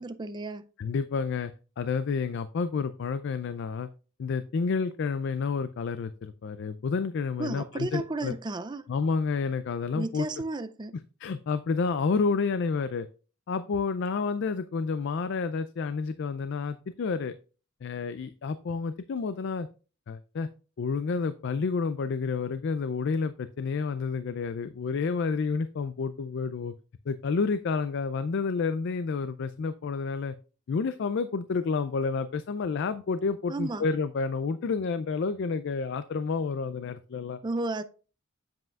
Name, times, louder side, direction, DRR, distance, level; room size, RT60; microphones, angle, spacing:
voice 1, 0.0-0.7 7.4-8.8 9.9-11.0 33.5-33.8 37.4-37.8, right 2 dB, 20° right, 0.4 m, -33 dB
voice 2, 0.8-3.9 4.2-8.3 8.9-10.3 11.2-13.1 13.5-17.3 17.8-19.7 20.1-20.5 20.8-26.7 27.1-30.3 30.7-37.4, left 5 dB, 55° left, 0.3 m, -30 dB
7.6 x 7.6 x 2.3 m
head